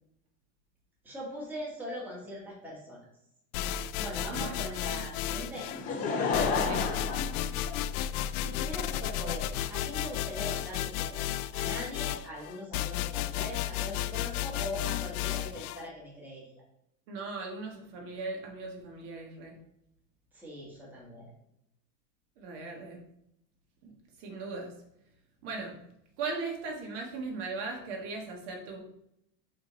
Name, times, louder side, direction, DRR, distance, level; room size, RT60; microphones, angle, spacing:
voice 1, 1.0-3.0 4.0-5.7 8.4-16.4 20.3-21.3, equal, 5° right, -5 dB, 1.3 m, -41 dB
sound 1, 3.5-5.8 6.3-15.8, left 12 dB, 85° left, 0.5 m, -33 dB
voice 2, 4.3-4.6 6.6-6.8 17.1-19.5 22.4-23.0 23.8-23.9 24.2-24.7 25.4-25.8 26.2-28.8, right 3 dB, 55° right, 1 dB, 1.7 m, -38 dB
Laughter / Crowd, 5.7-8.3 9.0-9.1, left 4 dB, 20° left, 0.7 m, -31 dB
5.2 x 5.1 x 4.0 m, 0.80 s
supercardioid pair, 175°, 43 cm